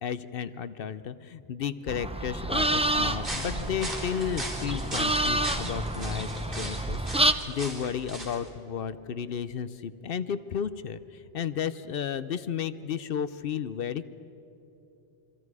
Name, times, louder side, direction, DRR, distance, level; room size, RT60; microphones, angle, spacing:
voice 1, 0.0-6.3 6.6-11.0 11.3-14.1, left 8 dB, 60° left, 14 dB, 0.8 m, -33 dB
sound 1, 1.9-7.3, right 1 dB, 10° right, 0.4 m, -28 dB
sound 2, 3.2-8.5, right 1 dB, 55° right, 4.8 m, -38 dB
27.0 x 24.5 x 4.8 m, 2.9 s
omnidirectional pair, 1.1 m